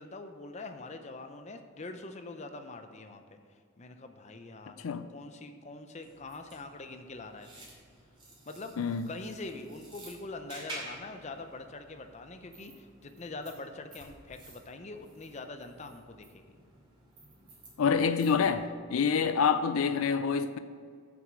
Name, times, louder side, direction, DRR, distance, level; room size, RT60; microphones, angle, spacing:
voice 1, 0.0-3.4 3.8-7.7 8.4-8.7 9.1-16.6, left 3 dB, 30° left, 0.6 m, -44 dB
sound 1, 6.0-18.7, right 1 dB, 25° right, 2.5 m, -51 dB
voice 2, 17.8-20.6, left 6 dB, 80° left, 0.4 m, -27 dB
7.2 x 6.1 x 7.3 m
head